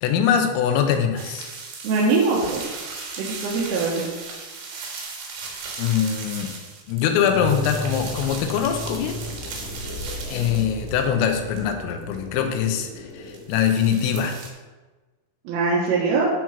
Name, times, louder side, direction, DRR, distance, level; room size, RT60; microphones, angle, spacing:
voice 1, 0.0-1.5 5.8-6.6 6.9-9.2 10.3-14.4, left 8 dB, 90° left, 5 dB, 3.5 m, -23 dB
sound 1, 1.2-11.1 11.5-12.9 13.3-14.5, right 4 dB, 60° right, 2.8 m, -37 dB
voice 2, 1.8-2.6 3.2-4.1 15.5-16.3, right 4 dB, 80° right, -6 dB, 3.9 m, -22 dB
sound 2, 7.3-13.5, equal, 70° left, 3.7 m, -34 dB
10.5 x 4.6 x 5.9 m, 1.3 s
omnidirectional pair, 5.9 m